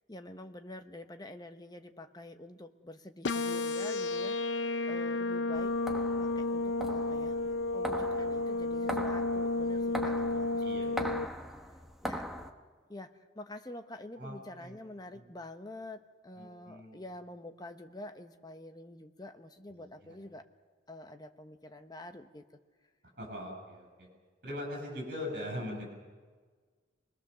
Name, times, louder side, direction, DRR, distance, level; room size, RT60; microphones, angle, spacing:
voice 1, 0.1-5.8 6.2-7.4 7.7-11.3 12.0-12.3 12.9-20.5 20.9-22.4, left 1 dB, 20° left, 7 dB, 0.9 m, -47 dB
sound 1, 3.2-11.3, left 2 dB, 70° left, 0.6 m, -32 dB
sound 2, 5.5-12.5, equal, ahead, 1.0 m, -41 dB
voice 2, 10.6-11.2 14.2-14.7 15.0-15.2 16.4-17.0 19.7-20.2 23.2-24.1 24.4-25.8, left 1 dB, 50° right, 1 dB, 7.4 m, -41 dB
25.0 x 21.5 x 6.8 m, 1.5 s
head